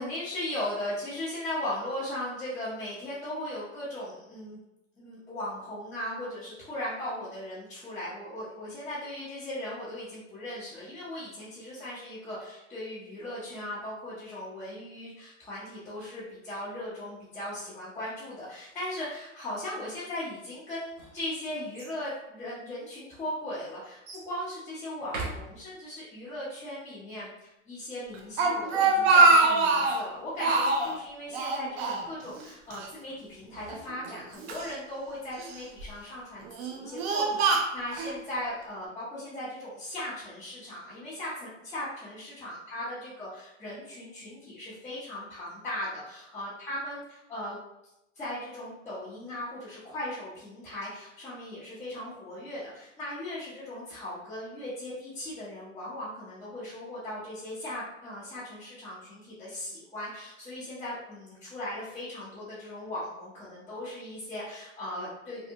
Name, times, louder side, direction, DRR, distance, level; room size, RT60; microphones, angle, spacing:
voice 1, 0.0-4.6 5.0-47.6 48.1-65.5, left 1 dB, 5° left, -11 dB, 0.4 m, -38 dB
sound 1, 20.7-22.0 22.8-22.9 24.0-24.3 25.0-26.0 33.1-34.4, right 2 dB, 80° right, 1.0 m, -42 dB
Speech, 28.1-30.0 30.4-30.9 31.3-32.4 32.7-32.9 33.7-34.7 35.4-35.8 36.4-38.1, right 3 dB, 50° right, 0.5 m, -24 dB
3.4 x 2.1 x 2.6 m, 0.87 s
hypercardioid pair, 135°, 40 cm